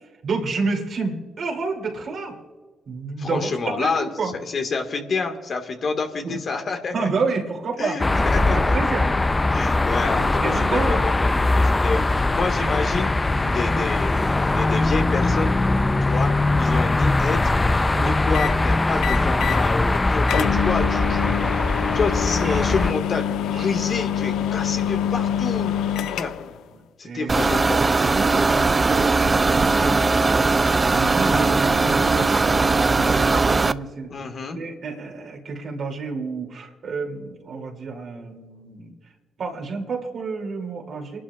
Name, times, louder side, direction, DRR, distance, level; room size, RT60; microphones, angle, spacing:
voice 1, 0.2-2.3 2.9-4.3 6.2-6.4 6.9-7.9 8.4-9.1 10.1-11.0 13.4-13.6 15.8-16.0 16.5-16.6 17.9-18.1 22.4-22.6 23.5-23.6 25.9-26.0 27.0-27.4 28.0-30.1 30.3-30.6 30.9-34.1 34.5-38.9 39.4-41.2, right 4 dB, 65° right, 1 dB, 2.7 m, -29 dB
voice 2, 3.2-7.1 7.8-8.8 9.5-13.1 13.5-14.1 14.5-15.5 16.0-17.5 18.0-21.3 21.9-25.8 26.2-26.3 27.0-28.1 34.1-34.6, left 4 dB, 55° left, 4 dB, 1.7 m, -28 dB
sound 1, 8.0-22.9, left 2 dB, 25° left, 0.5 m, -21 dB
sound 2, 18.3-18.6 19.0-19.6 19.9-20.0 20.3-26.6, left 9 dB, 80° left, 0.4 m, -26 dB
sound 3, 27.3-33.7, right 3 dB, 30° right, 0.5 m, -19 dB
29.5 x 11.5 x 2.4 m, 1.4 s
supercardioid pair, 50°, 0 cm